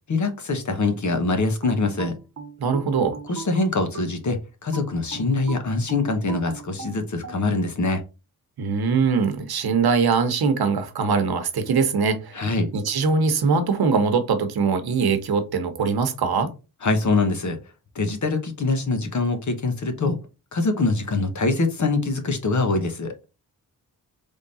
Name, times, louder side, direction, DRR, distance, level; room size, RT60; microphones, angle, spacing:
voice 1, 0.1-2.1 3.3-8.0 12.3-12.7 16.8-17.6 17.9-20.2 20.5-23.1, left 3 dB, 50° left, 1.1 m, -24 dB
sound 1, 1.6-4.2 4.7-7.4, right 6 dB, 45° right, 1.0 m, -38 dB
voice 2, 2.6-3.2 8.6-12.5 12.7-16.5, right 5 dB, 80° right, 1.0 m, -22 dB
3.7 x 3.4 x 4.1 m
wide cardioid pair, 155°, 37 cm